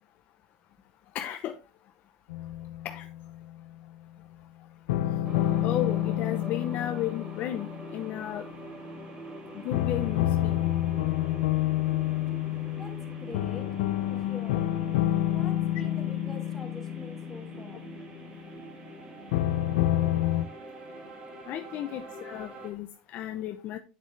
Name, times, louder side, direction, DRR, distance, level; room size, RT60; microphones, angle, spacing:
voice 1, 1.1-1.5 2.8-3.1 5.6-8.4 9.5-10.6 21.5-23.8, left 12 dB, 50° left, 7 dB, 0.8 m, -34 dB
sound 1, 2.3-3.5 4.9-8.9 9.7-18.5 19.3-20.5, left 13 dB, 90° left, 0.5 m, -29 dB
sound 2, 5.2-22.7, right 2 dB, 30° right, 3.0 m, -44 dB
voice 2, 12.7-13.7 14.0-14.7 15.3-17.8 21.2-21.4, left 3 dB, 10° left, 0 dB, 3.3 m, -45 dB
9.7 x 7.1 x 3.4 m, 0.32 s
supercardioid pair, 135°, 4 cm